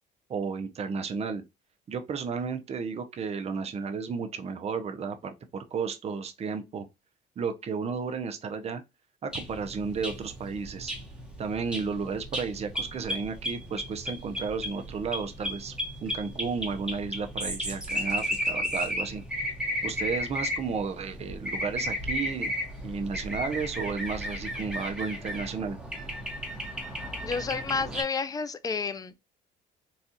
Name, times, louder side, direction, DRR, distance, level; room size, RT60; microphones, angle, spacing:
voice 1, 0.3-1.4 1.9-6.9 7.4-8.8 9.2-10.9 11.4-15.7 16.0-19.2 19.8-22.5 22.8-25.8, right 5 dB, 40° right, 0.6 m, -33 dB
sound 1, 9.3-28.0, equal, 5° right, 1.0 m, -34 dB
voice 2, 27.2-29.2, left 5 dB, 20° left, 0.4 m, -30 dB
4.1 x 2.3 x 2.6 m
cardioid pair, 110°, 17 cm